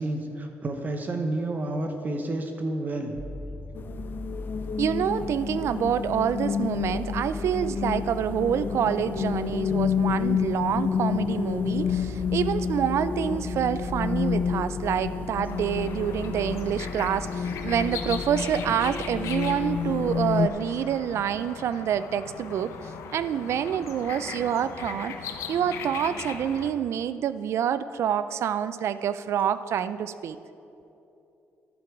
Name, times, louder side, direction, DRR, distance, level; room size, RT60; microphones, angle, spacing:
voice 1, 0.0-3.2, right 2 dB, 35° right, 5 dB, 0.8 m, -30 dB
sound 1, 3.2-21.1, left 1 dB, 5° right, 0.6 m, -40 dB
sound 2, 3.7-20.5, left 7 dB, 45° left, 0.4 m, -29 dB
voice 2, 4.8-25.2 25.5-30.4, right 9 dB, 65° right, 14 dB, 0.4 m, -27 dB
sound 3, 15.5-26.7, left 7 dB, 80° left, 0.7 m, -39 dB
12.0 x 7.8 x 4.7 m, 2.9 s
cardioid pair, 120°, 5 cm